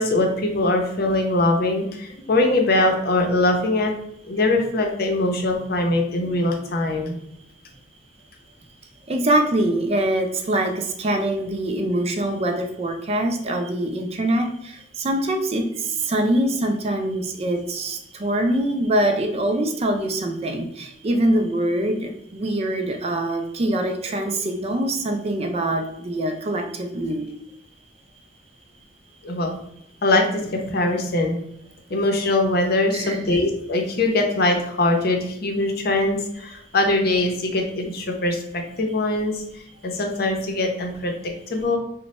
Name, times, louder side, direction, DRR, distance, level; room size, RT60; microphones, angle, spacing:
voice 1, 0.0-3.9 4.2-7.2 29.2-29.5 30.0-31.4 31.9-39.4 39.8-41.2 41.5-41.8, left 2 dB, 55° left, 3 dB, 0.7 m, -22 dB
voice 2, 9.1-27.3 32.9-33.2, right 1 dB, 35° right, 5 dB, 0.5 m, -24 dB
3.1 x 2.2 x 4.1 m, 0.77 s
head